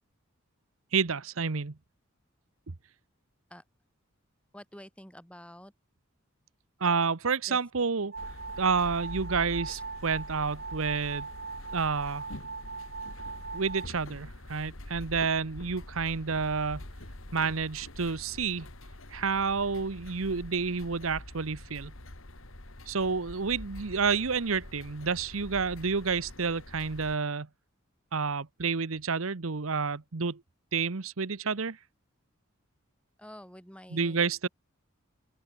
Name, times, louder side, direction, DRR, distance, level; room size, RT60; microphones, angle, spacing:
voice 1, 0.9-1.7 6.8-8.1 8.6-11.3 11.7-12.2 13.5-16.8 17.3-18.7 19.1-21.9 22.9-27.5 28.1-30.4 30.7-31.8 33.9-34.5, right 5 dB, 80° right, 1.0 m, -29 dB
voice 2, 4.5-5.7 7.5-7.6 9.7-9.8 33.2-34.2, equal, 5° left, 7.6 m, -48 dB
sound 1, 8.1-13.9, right 4 dB, 50° right, 5.3 m, -40 dB
sound 2, 8.2-27.2, left 1 dB, 75° left, 3.0 m, -45 dB
open air
head